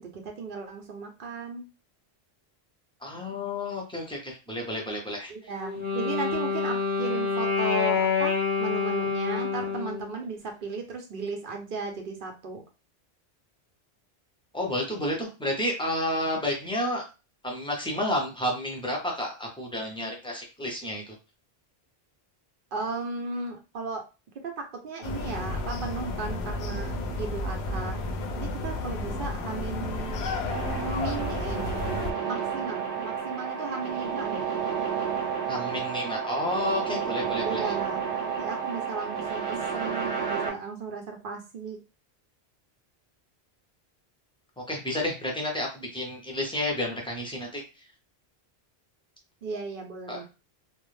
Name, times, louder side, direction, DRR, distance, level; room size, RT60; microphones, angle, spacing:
voice 1, 0.0-1.6 5.3-8.3 8.6-12.6 22.7-24.0 24.4-28.0 28.4-30.2 30.8-34.4 37.4-41.8 49.4-50.2, right 4 dB, 60° right, 3 dB, 0.7 m, -36 dB
voice 2, 3.0-5.3 14.5-17.1 17.4-21.1 35.5-37.7 44.7-47.6 50.1-50.2, left 1 dB, 5° left, -1 dB, 0.5 m, -31 dB
Wind instrument woodwind instrument, 5.6-10.1, left 5 dB, 10° right, 0.9 m, -27 dB
sound 1, 25.0-32.1, left 2 dB, 80° left, 0.8 m, -32 dB
sound 2, 30.5-40.5, right 7 dB, 85° right, 0.9 m, -31 dB
2.4 x 2.0 x 3.1 m, 0.30 s
omnidirectional pair, 1.1 m